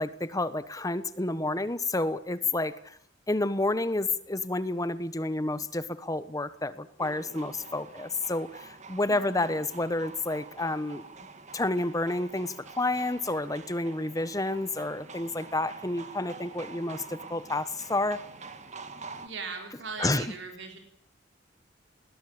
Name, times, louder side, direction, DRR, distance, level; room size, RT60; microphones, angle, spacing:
voice 1, 0.0-3.0 3.3-11.0 11.5-18.2 20.0-20.2, left 2 dB, 20° left, 14 dB, 1.2 m, -30 dB
sound 1, 7.0-19.3, right 4 dB, 35° right, 2.0 m, -46 dB
voice 2, 9.1-9.6 19.2-20.8, right 4 dB, 70° right, 4 dB, 4.4 m, -40 dB
21.5 x 19.0 x 8.8 m, 0.63 s
head